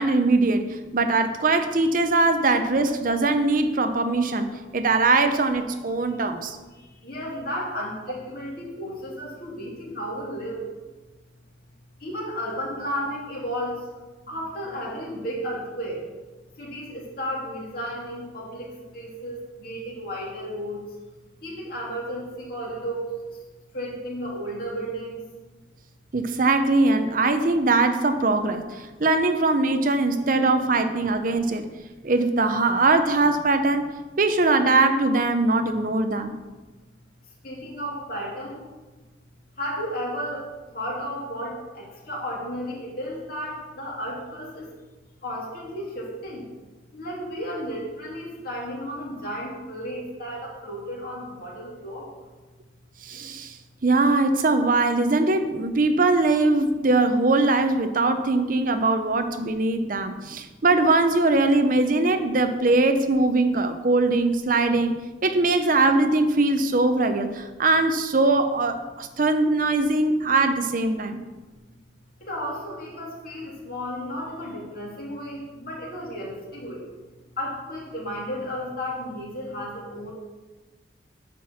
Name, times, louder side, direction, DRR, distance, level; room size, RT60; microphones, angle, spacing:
voice 1, 0.0-6.6 26.1-31.7 32.0-36.3 53.0-53.6 53.8-71.2, right 2 dB, 45° right, 8 dB, 0.6 m, -21 dB
voice 2, 7.0-10.7 12.0-13.8 14.3-16.0 16.6-20.8 21.4-23.1 23.7-25.2 37.4-38.6 39.6-40.5 40.7-44.7 45.2-46.4 46.9-52.1 72.2-76.8 77.4-80.1, equal, 50° left, -4 dB, 2.8 m, -33 dB
10.5 x 4.5 x 7.1 m, 1.2 s
head